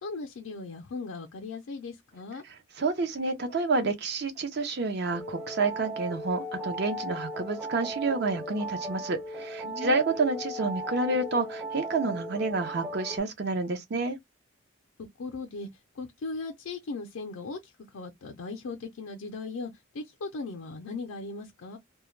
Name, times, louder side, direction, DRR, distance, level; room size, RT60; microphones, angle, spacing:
voice 1, 0.0-2.4 9.6-10.0 15.2-15.7 16.0-21.8, left 3 dB, 75° left, 0.4 m, -38 dB
voice 2, 2.8-14.2, right 3 dB, 50° right, 0.6 m, -29 dB
sound 1, 5.1-13.2, right 1 dB, 10° right, 0.3 m, -37 dB
2.2 x 2.1 x 3.1 m
head